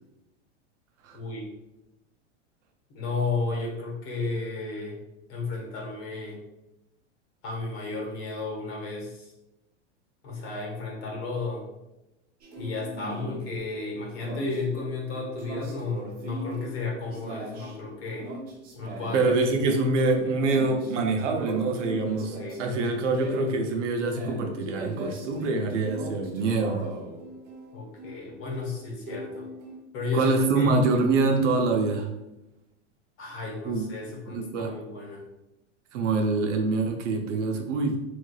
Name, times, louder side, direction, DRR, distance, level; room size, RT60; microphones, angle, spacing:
voice 1, 1.1-1.5 2.9-5.0 5.3-6.4 7.4-9.3 10.2-11.6 12.6-18.3 18.7-19.2 22.4-22.6 27.7-29.5 29.9-30.8 33.2-35.2, left 3 dB, 60° left, -1 dB, 1.3 m, -33 dB
sound 1, 12.4-29.8, right 1 dB, 25° right, 0.6 m, -40 dB
voice 2, 19.1-26.8 30.1-32.1 33.6-33.9 34.3-34.7 35.9-38.0, right 3 dB, 85° right, 3 dB, 0.7 m, -25 dB
3.3 x 3.2 x 2.3 m, 0.95 s
supercardioid pair, 135°, 36 cm